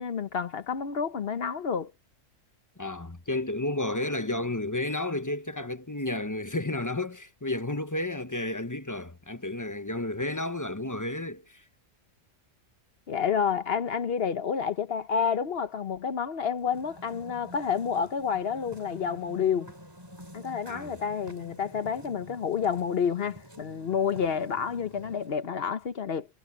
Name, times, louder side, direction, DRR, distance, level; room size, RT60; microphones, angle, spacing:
voice 1, 0.0-1.9 13.1-19.7 20.3-26.3, left 7 dB, 55° left, 1.1 m, -29 dB
voice 2, 2.8-11.6 20.7-21.0, left 2 dB, 15° left, 1.0 m, -32 dB
sound 1, 16.6-25.5, equal, 20° right, 6.2 m, -49 dB
omnidirectional pair, 1.3 m